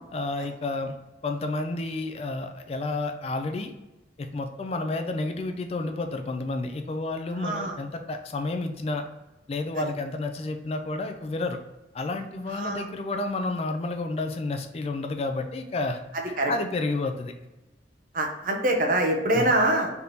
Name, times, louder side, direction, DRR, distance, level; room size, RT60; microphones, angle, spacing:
voice 1, 0.1-0.9 1.2-3.7 4.2-9.0 9.5-11.6 11.9-16.0 16.3-17.3 19.3-19.5, left 2 dB, 35° left, 6 dB, 0.3 m, -30 dB
voice 2, 7.4-7.7 12.5-12.9 16.4-16.5 18.1-19.9, right 1 dB, 50° right, 2 dB, 0.7 m, -24 dB
3.4 x 2.9 x 3.8 m, 1.0 s
head